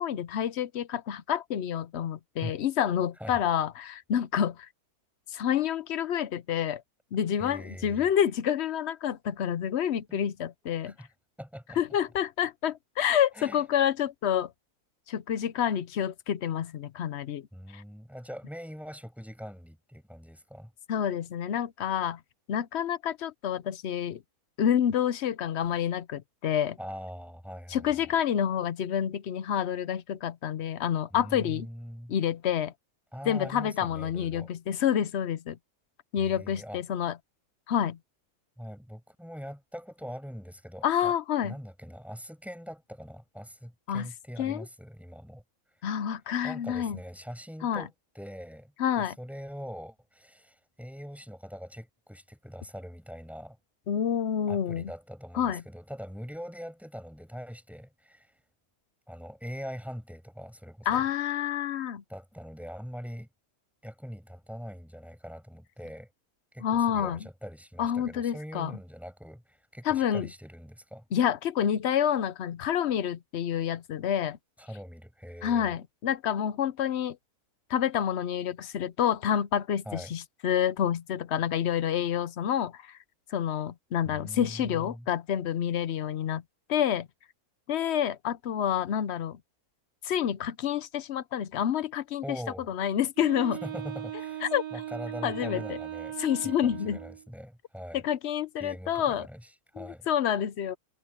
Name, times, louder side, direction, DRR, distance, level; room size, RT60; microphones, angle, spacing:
voice 1, 0.0-4.7 5.3-6.8 7.1-10.9 11.8-14.5 15.1-17.5 17.7-17.8 20.9-22.2 22.5-24.2 24.6-26.8 27.7-31.7 32.1-32.7 33.3-35.6 36.1-37.2 37.7-38.0 40.8-41.5 43.9-44.1 44.4-44.6 45.8-47.0 47.6-47.8 48.8-49.2 53.9-54.9 55.4-55.6 60.9-62.0 66.6-67.2 67.8-68.7 69.9-70.3 71.1-74.4 75.4-77.2 77.7-83.0 83.3-86.4 86.7-87.1 87.7-89.4 90.0-92.4 92.7-93.6 94.4-94.6 95.2-95.8 96.2-97.0 97.9-99.3 99.8-100.8, left 9 dB, 55° left, 0.8 m, -28 dB
voice 2, 7.4-8.1 10.1-10.3 10.8-11.1 11.4-11.8 13.3-13.6 17.5-20.7 26.8-28.2 31.1-32.1 33.1-34.5 36.2-36.8 38.6-41.1 41.4-45.4 46.4-53.6 54.5-58.4 59.1-61.1 62.1-63.3 63.8-66.1 66.5-71.1 74.6-75.7 79.8-80.1 84.0-85.1 92.2-92.7 93.6-96.2 96.4-98.0 98.6-100.1, equal, ahead, 6.3 m, -42 dB
Wind instrument woodwind instrument, 93.2-97.3, right 12 dB, 80° right, 1.6 m, -38 dB
omnidirectional pair, 1.6 m